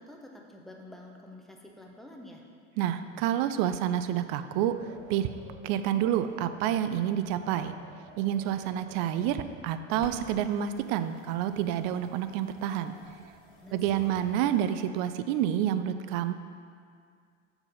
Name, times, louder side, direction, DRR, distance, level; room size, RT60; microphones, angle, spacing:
voice 1, 0.0-2.4 13.6-14.2, left 1 dB, ahead, -1 dB, 0.8 m, -48 dB
voice 2, 2.8-5.3 5.6-7.7 8.2-12.9 13.7-16.3, right 10 dB, 50° right, 11 dB, 0.5 m, -28 dB
Wind, 4.4-14.8, right 2 dB, 70° right, 1.5 m, -54 dB
sound 1, 10.0-14.8, left 3 dB, 70° left, 1.5 m, -53 dB
6.7 x 4.2 x 5.4 m, 2.2 s
hypercardioid pair, 90°, 40 cm